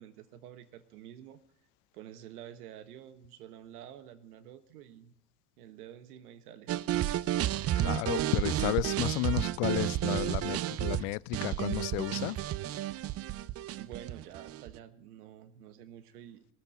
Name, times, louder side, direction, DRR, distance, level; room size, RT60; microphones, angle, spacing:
voice 1, 0.0-1.4 1.9-5.2 5.6-6.7 13.8-16.5, right 10 dB, 80° right, 1.4 m, -49 dB
sound 1, 6.7-14.8, right 13 dB, 35° right, 0.5 m, -32 dB
voice 2, 7.8-12.4, left 23 dB, 60° left, 0.5 m, -32 dB
19.5 x 13.5 x 4.3 m
hypercardioid pair, 95°, 45 cm